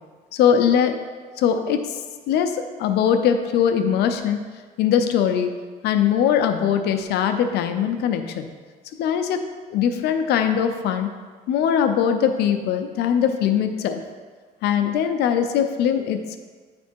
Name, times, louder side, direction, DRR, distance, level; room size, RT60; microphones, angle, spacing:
voice 1, 0.3-2.0 2.3-4.4 4.8-5.5 5.8-8.5 9.0-11.1 11.5-14.0 14.6-16.4, left 8 dB, 80° left, 7 dB, 0.6 m, -21 dB
9.3 x 3.4 x 4.5 m, 1.5 s
cardioid pair, 110°, 17 cm